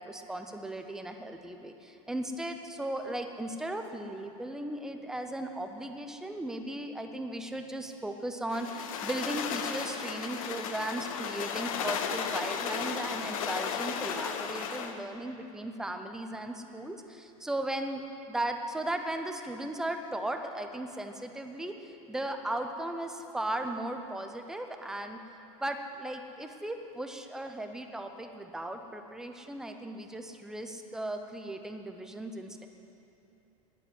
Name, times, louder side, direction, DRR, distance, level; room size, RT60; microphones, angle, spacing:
voice 1, 0.0-18.0 18.3-25.2 25.6-32.7, right 1 dB, 5° right, 5 dB, 0.4 m, -37 dB
sound 1, 8.5-15.0, left 7 dB, 80° left, 1.0 m, -34 dB
10.0 x 9.4 x 9.6 m, 3.0 s
supercardioid pair, 175°, 17 cm